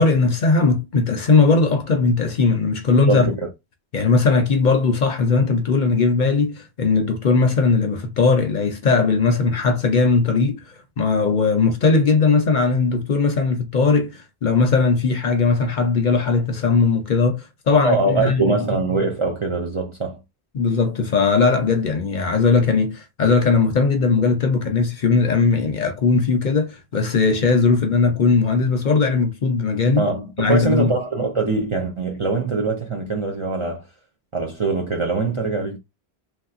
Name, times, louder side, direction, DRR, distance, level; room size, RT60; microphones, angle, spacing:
voice 1, 0.0-3.3 3.9-10.6 11.0-18.6 20.5-30.0 30.4-30.9, left 4 dB, 55° left, 0.6 m, -19 dB
voice 2, 3.1-3.5 17.8-20.2 30.0-33.9 34.3-35.8, right 3 dB, 40° right, 0.4 m, -23 dB
3.1 x 2.6 x 2.4 m
omnidirectional pair, 1.1 m